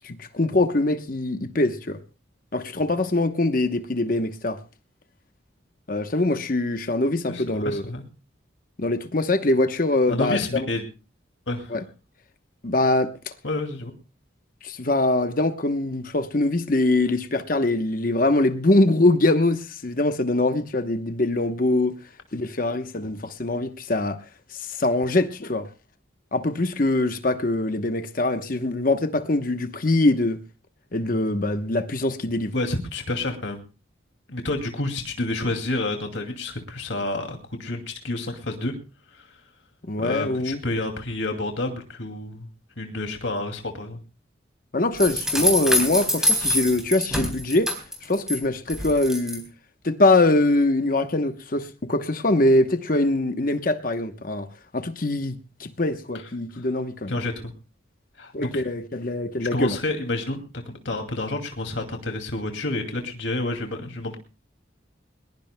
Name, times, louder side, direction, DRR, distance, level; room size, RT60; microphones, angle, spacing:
voice 1, 0.0-2.0 2.5-4.6 5.9-7.8 8.8-10.7 11.7-11.8 12.6-13.1 14.6-21.9 22.3-24.2 24.5-25.7 26.3-30.4 30.9-32.5 39.9-40.6 44.7-47.7 48.0-49.4 49.8-54.5 54.7-57.1 58.3-59.8, left 2 dB, 45° left, 1.0 m, -23 dB
voice 2, 7.3-8.0 10.1-10.8 11.5-11.8 13.4-13.9 32.5-33.6 34.3-38.7 39.1-39.3 40.0-42.5 42.8-44.0 56.5-56.6 57.1-57.3 58.2-58.6 59.4-64.2, left 2 dB, 80° left, 2.4 m, -29 dB
sound 1, 45.0-48.4 48.7-49.4, equal, 5° right, 4.0 m, -24 dB
21.0 x 21.0 x 2.2 m
head